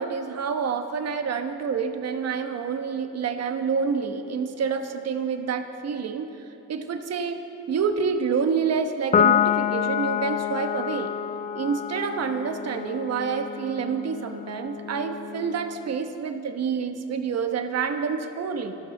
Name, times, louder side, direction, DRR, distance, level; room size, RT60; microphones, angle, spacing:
voice 1, 0.0-6.3 6.7-7.4 7.7-11.1 11.5-18.8, right 6 dB, 55° right, 7 dB, 1.1 m, -28 dB
Piano, 9.1-15.8, left 9 dB, 25° left, 0.4 m, -27 dB
12.5 x 11.5 x 7.0 m, 2.9 s
cardioid pair, 90°, 30 cm